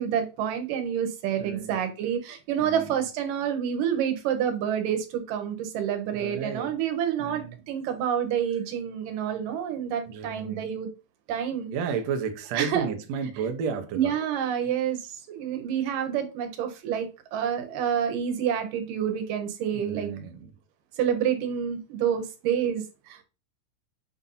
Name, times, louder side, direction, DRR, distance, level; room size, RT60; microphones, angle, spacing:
voice 1, 0.0-10.9 11.3-11.7 12.6-12.9 14.0-20.1 21.0-23.2, right 9 dB, 85° right, 2.6 m, -28 dB
voice 2, 1.3-1.8 2.6-3.0 6.2-6.7 7.2-7.6 10.1-10.7 11.7-14.2 19.7-20.5, right 6 dB, 70° right, 1.8 m, -33 dB
7.1 x 2.6 x 5.4 m
omnidirectional pair, 3.7 m